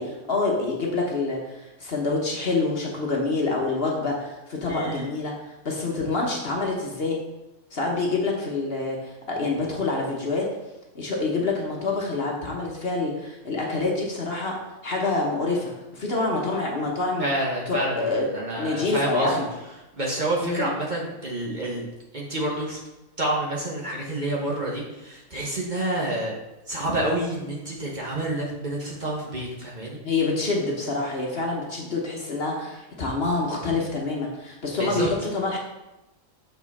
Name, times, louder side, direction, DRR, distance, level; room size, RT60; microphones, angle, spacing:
voice 1, 0.0-5.3 5.6-7.2 7.7-10.4 10.9-14.5 14.8-17.3 17.7-18.2 18.6-19.5 20.4-20.7 30.0-35.6, left 3 dB, 45° left, -1 dB, 1.2 m, -26 dB
voice 2, 4.7-5.1 17.2-19.4 20.0-21.8 22.1-22.8 23.2-26.3 26.7-30.0 34.8-35.1, right 1 dB, 35° right, -3 dB, 1.2 m, -28 dB
6.5 x 5.5 x 4.1 m, 1.0 s
omnidirectional pair, 1.5 m